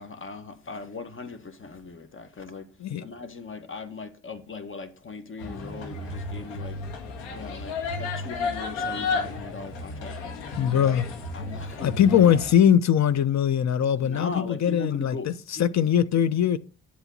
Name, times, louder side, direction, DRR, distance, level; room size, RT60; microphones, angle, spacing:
voice 1, 0.0-2.7 3.0-6.8 7.3-10.4 11.3-12.4 14.0-15.7, left 3 dB, 35° left, 1.9 m, -39 dB
sound 1, 5.4-12.5, left 3 dB, 90° left, 2.0 m, -33 dB
voice 2, 10.6-11.1 11.8-15.2 15.5-16.6, left 9 dB, 55° left, 1.0 m, -21 dB
9.9 x 8.1 x 4.0 m
hypercardioid pair, 60°, 34 cm